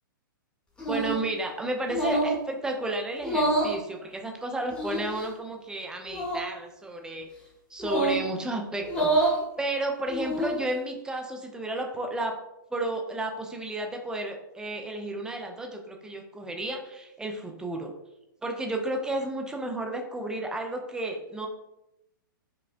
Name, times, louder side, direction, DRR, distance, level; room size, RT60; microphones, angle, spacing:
sound 1, 0.8-1.3 1.9-2.4 3.2-3.8 4.7-5.3 6.1-6.4 7.8-8.2 8.8-9.4 10.1-10.6, right 1 dB, 10° left, 1.0 m, -27 dB
voice 1, 0.9-7.3 7.7-12.3 12.7-17.9 18.4-21.5, right 2 dB, 5° right, 2 dB, 0.4 m, -32 dB
4.9 x 2.1 x 2.4 m, 0.89 s
hypercardioid pair, 120°, 11 cm